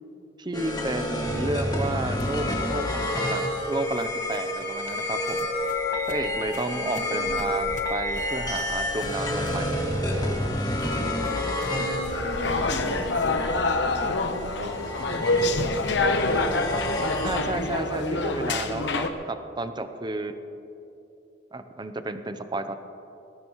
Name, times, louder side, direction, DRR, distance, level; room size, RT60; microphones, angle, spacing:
voice 1, 0.4-5.5 6.1-9.8 17.2-20.3 21.5-22.8, right 2 dB, 25° right, 9 dB, 0.7 m, -32 dB
sound 1, 0.5-17.8, left 1 dB, 20° left, 1.9 m, -29 dB
sound 2, 2.2-16.2, left 1 dB, 45° left, 0.8 m, -43 dB
voice 2, 6.7-7.6 11.2-13.5 13.8-17.0, equal, 70° right, 3 dB, 1.8 m, -39 dB
sound 3, 12.1-19.1, left 2 dB, 70° left, 1.0 m, -26 dB
20.5 x 17.0 x 3.1 m, 2.9 s
head